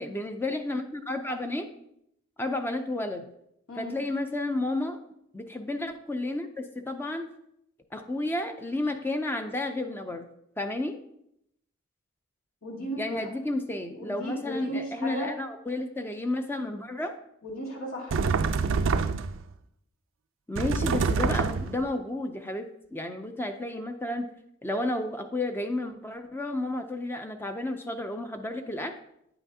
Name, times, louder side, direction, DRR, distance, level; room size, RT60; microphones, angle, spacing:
voice 1, 0.0-1.7 2.4-3.3 3.8-5.0 5.3-7.3 7.9-10.3 10.6-11.0 13.0-17.1 20.5-24.3 24.6-28.9, left 2 dB, 10° left, 6 dB, 0.4 m, -32 dB
voice 2, 12.6-13.3 13.9-15.3 17.4-18.2, equal, 85° left, -3 dB, 2.5 m, -35 dB
sound 1, 18.1-19.4 20.6-21.8, right 5 dB, 65° right, 0.4 m, -26 dB
9.2 x 5.7 x 2.7 m, 0.76 s
head